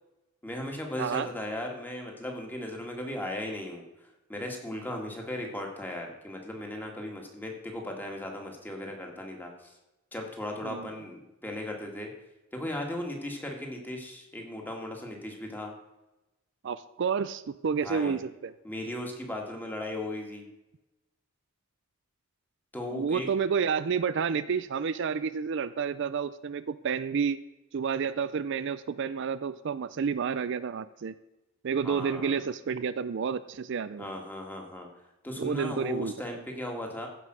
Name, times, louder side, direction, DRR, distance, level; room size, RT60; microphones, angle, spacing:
voice 1, 0.4-9.8 10.1-12.1 12.5-15.7 17.8-18.2 18.6-20.5 22.7-23.3 31.8-32.4 34.0-34.9 35.2-37.1, left 1 dB, 10° left, 1 dB, 2.0 m, -37 dB
voice 2, 16.6-18.5 22.9-27.4 27.7-31.1 31.6-34.1 35.4-36.1, right 6 dB, 60° right, 14 dB, 0.4 m, -30 dB
15.5 x 5.4 x 6.2 m, 0.98 s
head